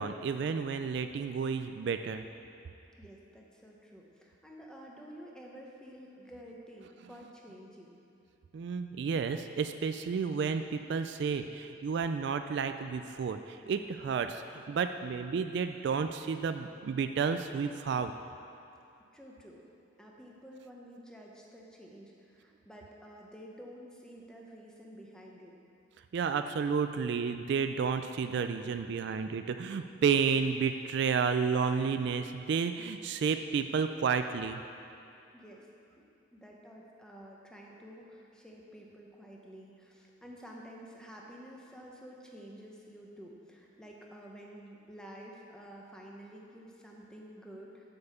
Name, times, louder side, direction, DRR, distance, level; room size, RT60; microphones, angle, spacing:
voice 1, 0.0-2.2 8.5-18.1 26.1-34.6, right 6 dB, 60° right, 9 dB, 0.3 m, -31 dB
voice 2, 3.0-8.0 19.1-19.6 20.0-25.6 35.3-35.7 36.3-47.9, equal, 5° left, -2 dB, 0.9 m, -50 dB
7.8 x 5.5 x 7.0 m, 2.7 s
head